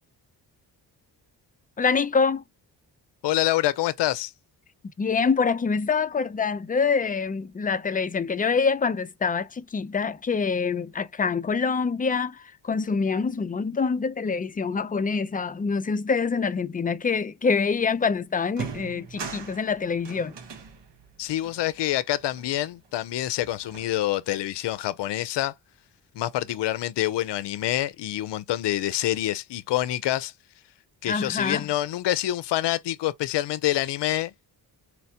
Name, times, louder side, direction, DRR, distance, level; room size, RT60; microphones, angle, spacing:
voice 1, 1.8-2.4 5.0-20.4 31.1-31.6, left 5 dB, 20° left, 0.4 m, -25 dB
voice 2, 3.2-4.3 21.2-25.5 26.1-30.3 31.0-34.3, left 14 dB, 70° left, 0.5 m, -26 dB
sound 1, 17.9-18.0 18.5-23.0 23.4-24.4, right 5 dB, 75° right, 1.2 m, -41 dB
4.4 x 2.1 x 2.7 m
cardioid pair, 65°, 43 cm